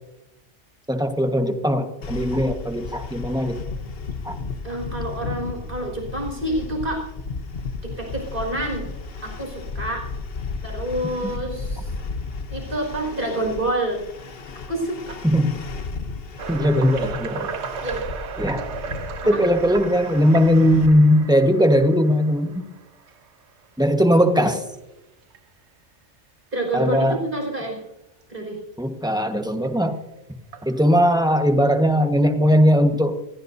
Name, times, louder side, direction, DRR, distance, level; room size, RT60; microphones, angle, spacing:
voice 1, 0.9-3.6 4.2-4.4 11.2-11.3 15.2-15.6 16.5-17.5 18.4-18.6 19.2-22.6 23.8-24.6 26.7-27.2 28.8-30.0 30.6-33.1, equal, 5° right, 5 dB, 1.3 m, -19 dB
sound 1, 2.0-20.9, left 4 dB, 55° left, 1.2 m, -34 dB
voice 2, 4.6-7.0 7.8-8.9 9.2-10.0 10.6-11.9 12.5-14.1 14.7-15.2 16.7-16.8 17.8-18.0 19.3-19.4 26.5-27.8 28.3-28.6, right 1 dB, 50° right, 0 dB, 5.8 m, -28 dB
sound 2, 16.4-23.3 23.9-24.1 24.6-24.7 25.3-25.4 26.7-26.8 29.6-29.7 30.5-31.2, right 6 dB, 75° right, 1.1 m, -35 dB
27.0 x 15.5 x 2.7 m, 0.93 s
omnidirectional pair, 1.2 m